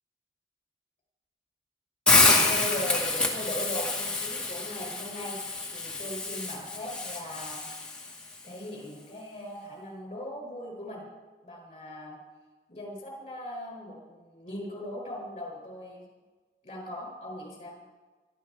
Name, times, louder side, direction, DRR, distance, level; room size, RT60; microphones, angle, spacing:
Hiss, 2.1-8.1, left 3 dB, 5° left, 2.1 m, -27 dB
voice 1, 2.5-5.4 5.7-7.6 8.4-11.0 11.4-12.2 12.7-16.1 16.6-17.8, left 1 dB, 35° left, 0 dB, 5.7 m, -39 dB
23.0 x 12.0 x 4.4 m, 1.3 s
head